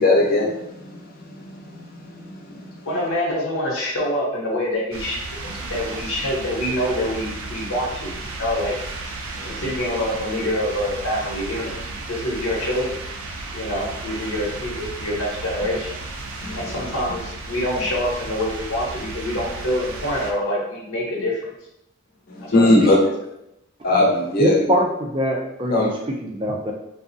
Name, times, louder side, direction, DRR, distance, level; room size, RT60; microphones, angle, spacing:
voice 1, 0.0-2.9 9.4-9.6 16.4-16.9 22.3-23.0 23.8-24.6 25.7-25.9, left 2 dB, 45° left, -1 dB, 0.6 m, -21 dB
voice 2, 2.8-5.2 5.6-8.7 9.4-11.7 12.1-13.0 13.5-16.0 16.5-21.4 22.4-22.7 23.0-23.1, left 1 dB, 90° left, -4 dB, 0.8 m, -26 dB
sound 1, 4.9-20.3, right 3 dB, 90° right, 0.4 m, -34 dB
voice 3, 24.4-26.7, equal, 25° right, 1 dB, 0.4 m, -22 dB
3.4 x 2.0 x 2.5 m, 0.84 s
head